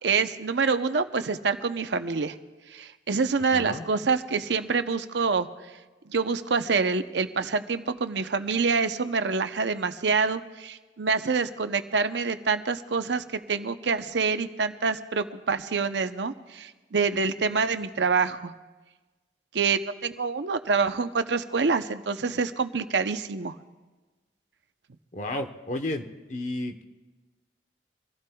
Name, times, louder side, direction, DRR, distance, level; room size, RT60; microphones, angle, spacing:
voice 1, 0.0-2.4 2.7-5.5 6.1-18.5 19.5-23.5, right 4 dB, 80° right, 9 dB, 0.7 m, -26 dB
voice 2, 3.5-3.9 25.1-26.8, left 1 dB, 45° left, 6 dB, 0.9 m, -32 dB
25.0 x 15.5 x 2.3 m, 1.3 s
head